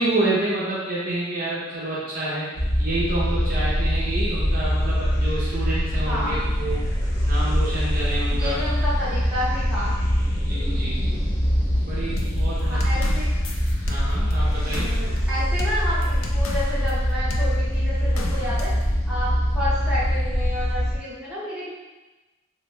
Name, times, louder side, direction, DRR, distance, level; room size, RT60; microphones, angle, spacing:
voice 1, 0.0-2.5 2.8-6.8 7.2-8.6 10.4-11.3 11.8-13.2 13.9-14.9, right 2 dB, 45° right, -7 dB, 0.7 m, -28 dB
sound 1, 2.5-21.0, equal, 55° left, 0.9 m, -23 dB
voice 2, 5.9-6.5 8.3-10.0 12.6-13.3 14.7-18.7 19.1-21.7, left 1 dB, 5° right, -11 dB, 1.1 m, -30 dB
sound 2, 12.2-17.0 17.3-17.5 18.2-18.8, left 3 dB, 80° left, 0.4 m, -37 dB
3.0 x 2.6 x 3.1 m, 1.1 s
head